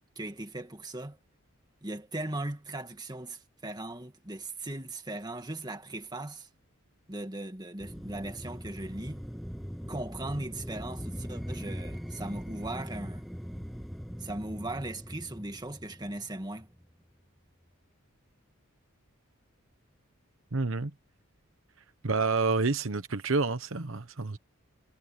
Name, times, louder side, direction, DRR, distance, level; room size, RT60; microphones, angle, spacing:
voice 1, 0.2-1.2 1.8-6.5 7.1-9.2 9.9-13.3 14.2-16.7, right 2 dB, 20° right, 2.1 m, -38 dB
sound 1, 7.8-16.9, equal, ahead, 8.0 m, -41 dB
voice 2, 20.5-20.9 22.0-24.4, right 4 dB, 65° right, 1.1 m, -28 dB
head